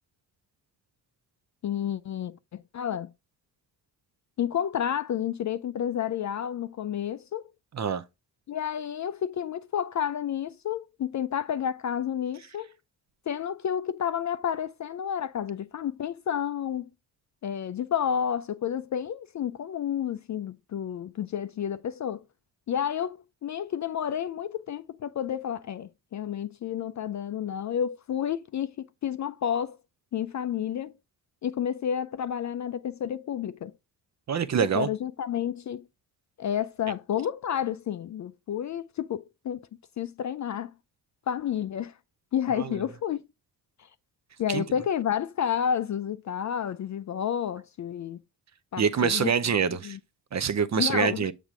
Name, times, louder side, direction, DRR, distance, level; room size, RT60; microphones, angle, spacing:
voice 1, 1.6-3.1 4.4-7.5 8.5-12.7 13.3-16.9 17.4-22.2 22.7-28.7 29.0-29.8 30.1-30.9 31.4-33.7 34.7-35.8 36.4-39.6 40.0-40.7 41.3-41.9 42.3-43.2 43.8-43.9 44.4-48.2 48.7-49.3 49.7-50.0 50.8-51.3, left 9 dB, 40° left, 0.4 m, -30 dB
voice 2, 34.3-34.9 42.6-42.7 44.5-44.6 48.8-50.0 50.3-51.3, right 7 dB, 35° right, 0.6 m, -25 dB
7.2 x 3.4 x 5.0 m
hypercardioid pair, 40°, 50 cm